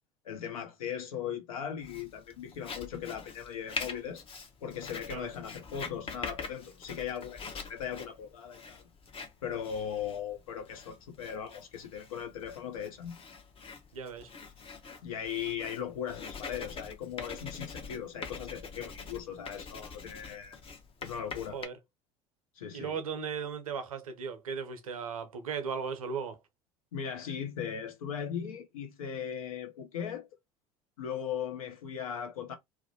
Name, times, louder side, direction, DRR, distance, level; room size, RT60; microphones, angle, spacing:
voice 1, 0.2-4.2 4.6-8.9 9.4-13.2 15.0-20.6 21.0-21.6 22.6-23.0 26.9-30.3 31.0-32.6, left 8 dB, 80° left, 0.6 m, -38 dB
Writing, 1.8-21.7, left 5 dB, 30° left, 0.7 m, -44 dB
voice 2, 13.9-14.3 21.5-21.7 22.7-26.4, right 6 dB, 85° right, 0.5 m, -36 dB
2.4 x 2.1 x 2.7 m
hypercardioid pair, 65°, 18 cm